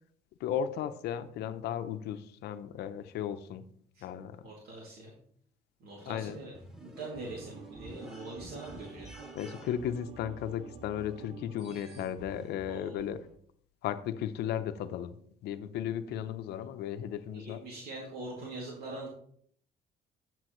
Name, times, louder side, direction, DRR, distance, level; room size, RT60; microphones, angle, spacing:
voice 1, 0.4-3.7 4.0-4.4 6.1-6.4 9.3-13.2 13.8-15.2 15.4-17.6, left 9 dB, 75° left, 11 dB, 0.7 m, -35 dB
voice 2, 4.4-5.1 5.8-9.1 12.7-13.1 17.3-19.1, right 2 dB, 65° right, -3 dB, 2.5 m, -43 dB
sound 1, 6.0-13.3, equal, 5° right, 2.6 m, -51 dB
sound 2, 7.0-12.1, right 7 dB, 35° right, 0.5 m, -50 dB
9.7 x 7.4 x 3.1 m, 0.62 s
cardioid pair, 110°, 17 cm